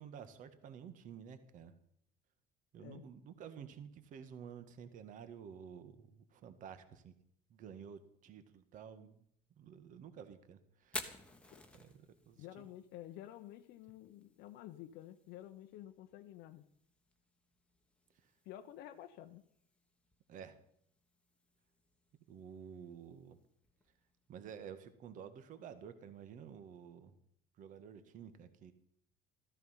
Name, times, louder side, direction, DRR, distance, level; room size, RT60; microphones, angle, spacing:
voice 1, 0.0-1.7 2.7-7.1 7.5-9.2 9.6-11.2 11.7-11.9 12.3-12.4 20.3-20.6 22.3-23.4 24.3-27.1 27.6-28.7, right 7 dB, 45° right, 10 dB, 1.6 m, -51 dB
Fire, 10.8-24.7, left 2 dB, 5° left, 1.3 m, -54 dB
voice 2, 12.4-16.7 18.4-19.4, left 12 dB, 65° left, 7 dB, 0.9 m, -51 dB
14.5 x 14.0 x 5.7 m, 0.66 s
cardioid pair, 170°, 18 cm